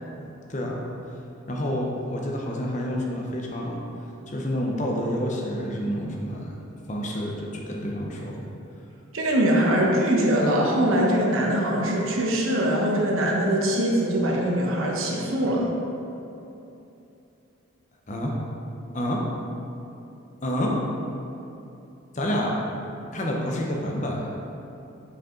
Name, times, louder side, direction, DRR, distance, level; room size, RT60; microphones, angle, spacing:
voice 1, 0.2-0.8 1.5-3.8 4.3-6.5 6.9-8.4 18.1-18.3 18.9-19.2 20.4-20.8 22.1-22.6 23.1-24.4, equal, 35° left, -1 dB, 0.7 m, -28 dB
voice 2, 9.1-15.6, right 1 dB, 80° right, -1 dB, 1.0 m, -22 dB
5.8 x 4.9 x 3.7 m, 2.8 s
head